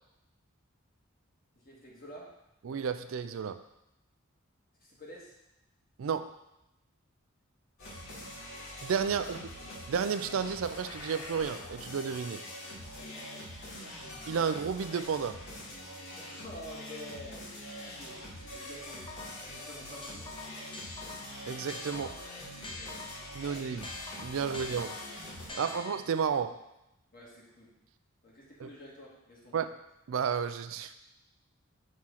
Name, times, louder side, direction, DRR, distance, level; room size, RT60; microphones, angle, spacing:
voice 1, 1.6-2.3 4.8-5.4 9.1-9.4 12.9-13.3 16.2-17.5 17.8-19.2 19.5-20.3 22.7-23.1 23.4-23.8 24.3-24.7 25.5-25.8 27.1-27.7 28.2-29.6, left 1 dB, 45° left, -4 dB, 1.8 m, -49 dB
voice 2, 2.6-3.6 6.0-6.3 8.8-9.5 9.9-12.4 14.3-15.4 21.5-22.2 23.3-23.9 24.2-24.9 25.6-26.6 28.6-28.7 29.5-29.7 30.1-30.9, right 6 dB, 70° right, 10 dB, 0.4 m, -32 dB
sound 1, 7.8-25.5, left 1 dB, 75° left, 2.4 m, -44 dB
sound 2, 18.8-19.5 20.0-23.4 23.8-26.3, left 3 dB, 25° left, 0.7 m, -45 dB
6.1 x 3.8 x 5.7 m, 0.87 s
head